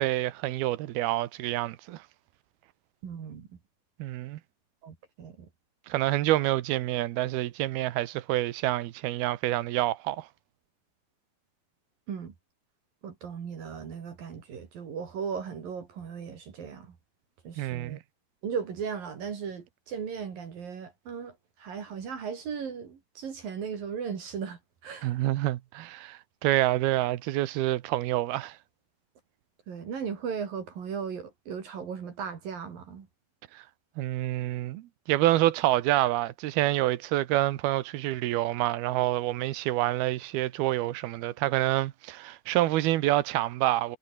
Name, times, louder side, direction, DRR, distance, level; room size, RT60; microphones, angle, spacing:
voice 1, 0.0-2.0 4.0-4.4 5.9-10.3 17.6-18.0 25.0-28.6 33.5-33.6 34.0-44.0, right 15 dB, 80° right, 2.9 m, -27 dB
voice 2, 3.0-3.5 4.8-5.4 12.1-12.3 13.0-16.9 17.4-18.0 18.4-21.3 21.6-25.2 29.7-33.1, right 6 dB, 60° right, 4.7 m, -37 dB
omnidirectional pair, 4.7 m